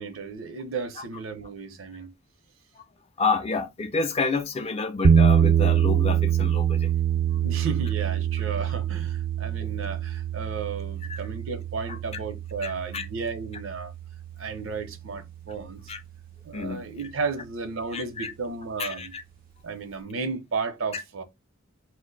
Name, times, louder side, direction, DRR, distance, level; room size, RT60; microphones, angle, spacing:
voice 1, 0.0-2.1 7.1-13.9 14.4-15.9 16.4-19.1 19.6-21.2, right 4 dB, 80° right, 0.6 m, -34 dB
voice 2, 3.2-6.9 7.3-7.4 9.6-9.7 11.1-11.2 11.9-12.0 12.6-13.1 15.9-16.0 16.5-16.8 17.9-18.3 18.8-19.2 20.9-21.0, left 4 dB, 30° left, 0.4 m, -29 dB
sound 1, 5.0-15.1, right 8 dB, 45° right, 0.3 m, -25 dB
2.4 x 2.1 x 3.8 m
head